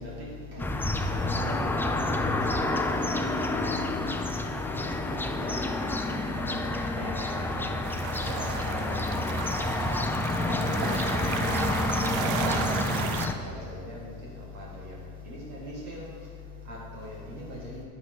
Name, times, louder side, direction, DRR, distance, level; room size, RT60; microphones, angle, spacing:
voice 1, 0.0-9.3 9.6-17.8, left 1 dB, 85° right, -4 dB, 2.0 m, -40 dB
sound 1, 0.6-13.3, left 2 dB, 5° left, 0.4 m, -29 dB
sound 2, 7.8-13.3, right 9 dB, 55° right, 0.6 m, -35 dB
9.4 x 8.5 x 3.7 m, 2.1 s
supercardioid pair, 95°, 44 cm